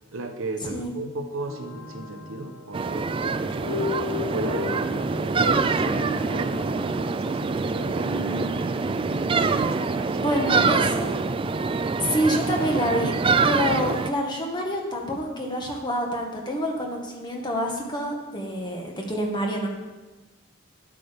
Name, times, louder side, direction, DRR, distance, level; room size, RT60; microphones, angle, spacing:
voice 1, 0.1-8.1 9.5-10.5, right 2 dB, 75° right, 5 dB, 1.0 m, -35 dB
sound 1, 1.4-11.5, left 3 dB, 75° left, 1.7 m, -37 dB
sound 2, 2.7-14.1, right 4 dB, 25° right, 0.3 m, -25 dB
voice 2, 10.2-11.2 12.0-13.1 13.4-19.7, equal, 20° left, 1 dB, 1.5 m, -27 dB
10.5 x 8.5 x 5.2 m, 1.2 s
head